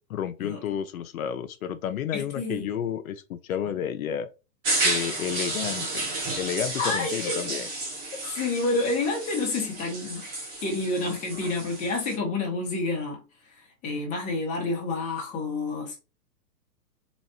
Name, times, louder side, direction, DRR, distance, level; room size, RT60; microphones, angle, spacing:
voice 1, 0.1-4.3 4.8-6.1 6.4-7.7, left 9 dB, 60° left, 0.7 m, -31 dB
voice 2, 2.1-2.7 3.6-3.7 6.8-7.6 8.1-10.3 10.6-13.2 13.6-16.0, left 3 dB, 15° left, 1.0 m, -29 dB
sound 1, 4.6-12.2, right 2 dB, 10° right, 0.5 m, -31 dB
4.1 x 2.4 x 4.3 m
hypercardioid pair, 150°, 49 cm